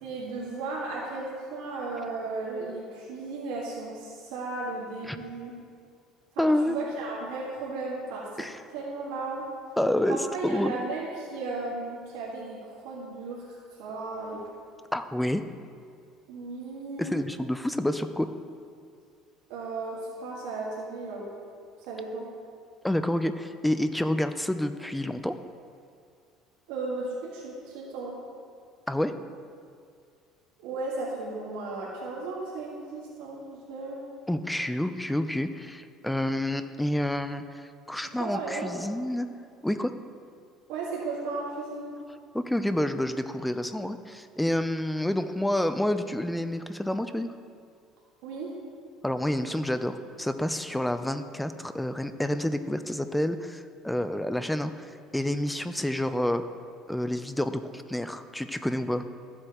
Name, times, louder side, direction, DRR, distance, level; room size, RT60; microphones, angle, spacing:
voice 1, 0.0-5.6 6.3-9.5 10.1-13.4 13.7-14.4 16.3-17.1 19.5-21.3 21.9-22.3 26.7-28.2 30.6-34.0 38.0-38.7 40.7-42.0 48.2-48.5, right 3 dB, 85° right, -6 dB, 1.8 m, -35 dB
voice 2, 6.4-6.8 8.4-8.6 9.8-10.7 14.9-15.4 17.0-18.3 22.8-25.4 28.9-29.1 34.3-39.3 39.6-39.9 42.3-47.3 49.0-56.4 56.9-59.0, left 1 dB, 5° left, 10 dB, 0.4 m, -28 dB
14.0 x 7.8 x 3.0 m, 2.3 s
cardioid pair, 125°, 0 cm